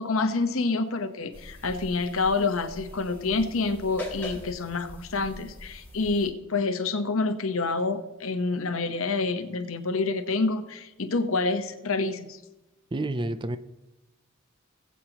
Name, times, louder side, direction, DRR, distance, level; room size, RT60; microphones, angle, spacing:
voice 1, 0.0-12.4, left 3 dB, 75° left, 1.0 m, -27 dB
sound 1, 1.3-6.3, left 1 dB, 10° left, 2.9 m, -42 dB
voice 2, 12.9-13.6, right 2 dB, 25° right, 0.4 m, -29 dB
19.5 x 8.4 x 2.9 m
head